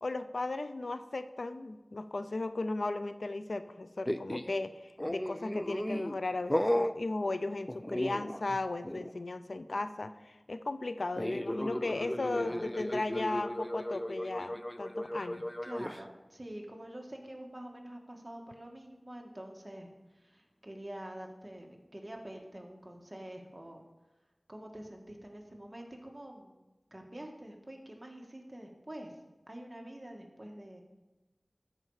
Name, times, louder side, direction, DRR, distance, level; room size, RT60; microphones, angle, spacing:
voice 1, 0.0-15.4, left 2 dB, 85° left, 10 dB, 0.4 m, -36 dB
sound 1, 4.1-4.6 5.0-6.2 6.5-7.0 7.7-8.6 8.8-9.1 11.2-16.0, left 1 dB, 15° left, 0.4 m, -35 dB
voice 2, 12.3-12.8 15.6-23.8 24.5-26.6 26.9-30.8, right 1 dB, 25° right, 1 dB, 1.6 m, -47 dB
13.0 x 5.3 x 4.8 m, 1.1 s
wide cardioid pair, 55°, 0 cm